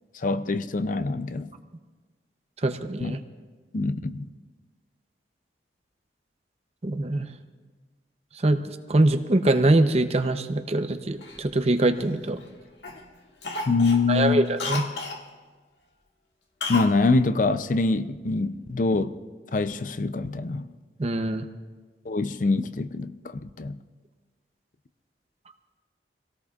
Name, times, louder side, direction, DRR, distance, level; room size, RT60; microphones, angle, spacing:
voice 1, 0.1-1.5 3.0-3.2 3.7-4.3 13.7-14.4 16.7-19.2 19.5-20.7 22.0-23.8, left 3 dB, 45° left, 0.5 m, -25 dB
voice 2, 2.6-3.2 6.8-7.3 8.4-12.4 14.1-14.8 21.0-21.5, right 2 dB, 35° right, 0.7 m, -23 dB
Cough, 11.2-12.5 12.8-13.1 13.4-15.2 16.6-17.0 17.2-17.3, left 3 dB, 75° left, 1.6 m, -33 dB
25.5 x 17.5 x 2.4 m
head